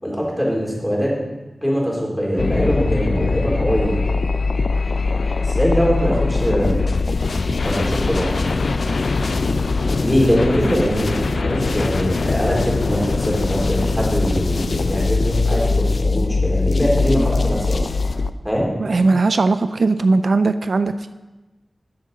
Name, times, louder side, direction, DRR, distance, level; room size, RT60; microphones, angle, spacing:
voice 1, 0.0-1.2 1.6-4.0 5.4-6.8 7.6-8.3 10.0-17.9 18.4-18.7, equal, 5° left, -4 dB, 3.2 m, -22 dB
sound 1, 2.4-18.3, left 3 dB, 75° left, 0.4 m, -21 dB
voice 2, 18.8-21.1, right 3 dB, 70° right, 11 dB, 0.3 m, -18 dB
12.5 x 7.6 x 3.9 m, 1.1 s
wide cardioid pair, 85°, 0 cm